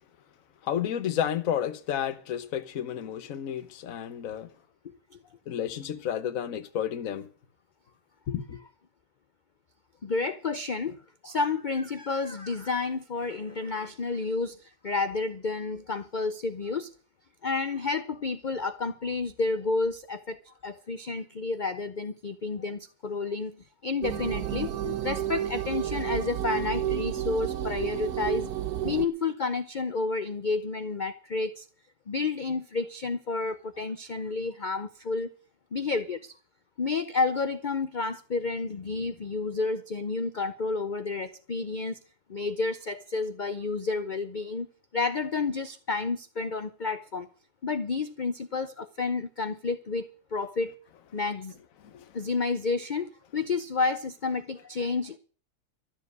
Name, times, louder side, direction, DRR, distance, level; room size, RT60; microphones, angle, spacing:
voice 1, 0.6-4.5 5.5-7.3 8.3-8.6 51.8-52.0, left 9 dB, 60° left, 1.4 m, -31 dB
voice 2, 10.0-11.0 11.2-16.9 17.4-23.6 23.8-28.5 28.8-31.7 32.1-35.3 35.7-36.4 36.8-42.0 42.3-44.7 44.9-47.3 47.6-50.7 51.1-51.6 52.1-55.2, left 4 dB, 45° left, 0.7 m, -30 dB
sound 1, 24.0-29.1, right 11 dB, 70° right, 1.4 m, -31 dB
13.5 x 7.4 x 9.3 m
omnidirectional pair, 1.7 m